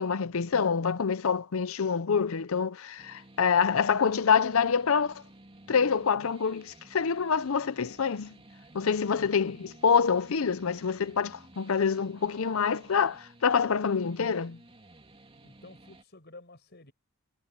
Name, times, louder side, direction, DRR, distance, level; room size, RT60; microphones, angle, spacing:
voice 1, 0.0-5.2 5.7-8.3 8.7-14.6, left 6 dB, 65° left, 0.6 m, -26 dB
sound 1, 3.0-16.0, right 2 dB, 25° right, 3.1 m, -55 dB
voice 2, 15.4-16.9, left 2 dB, 50° left, 5.5 m, -51 dB
head